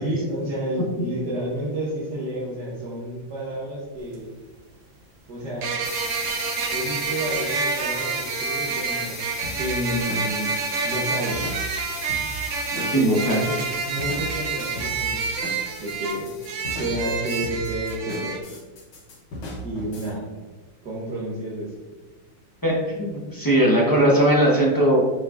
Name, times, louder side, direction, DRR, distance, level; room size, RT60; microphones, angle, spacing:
voice 1, 0.0-4.3 5.3-5.8 6.7-9.2 9.5-10.6 10.8-11.6 12.7-15.5 15.8-16.3 16.7-18.4 19.6-20.3 20.8-21.8, right 1 dB, 60° right, -7 dB, 1.7 m, -30 dB
sound 1, 4.0-4.1 5.6-18.4, right 5 dB, 90° right, 0.6 m, -28 dB
sound 2, 5.8-17.1, left 5 dB, 65° left, 1.2 m, -38 dB
sound 3, 9.4-20.1, equal, 85° left, 2.2 m, -37 dB
voice 2, 12.9-13.5 22.6-25.0, right 1 dB, 20° left, -4 dB, 0.5 m, -19 dB
6.2 x 6.1 x 2.5 m, 1.2 s
omnidirectional pair, 2.2 m